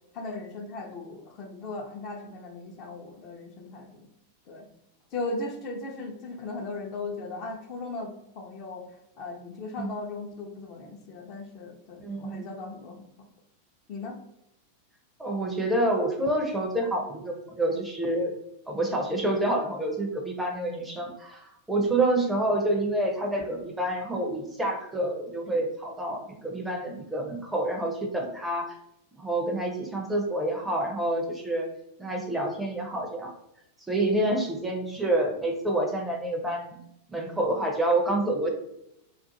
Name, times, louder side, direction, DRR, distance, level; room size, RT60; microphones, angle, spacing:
voice 1, 0.1-4.1 4.5-4.7 5.1-8.8 9.2-13.3 13.9-14.2, left 3 dB, 40° left, 2 dB, 0.7 m, -37 dB
voice 2, 12.0-12.5 15.2-18.4 18.7-28.7 29.2-31.7 32.0-33.3 33.9-36.8 37.1-38.5, right 1 dB, 5° right, 1 dB, 0.6 m, -28 dB
2.5 x 2.4 x 3.9 m, 0.82 s
figure-of-eight pair, 90°, 0 cm